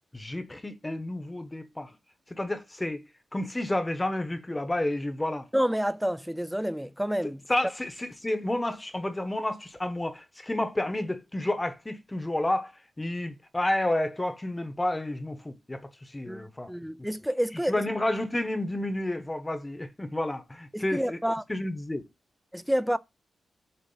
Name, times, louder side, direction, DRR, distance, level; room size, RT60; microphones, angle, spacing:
voice 1, 0.1-1.9 2.3-3.0 3.3-5.5 7.5-12.7 13.0-16.7 17.0-17.1 17.7-21.2 21.5-22.0, left 1 dB, 15° left, 1.0 m, -30 dB
voice 2, 5.5-7.4 16.3-17.7 20.7-21.4 22.5-23.0, equal, 5° right, 0.4 m, -29 dB
6.8 x 2.8 x 5.6 m
cardioid pair, 80°, 0 cm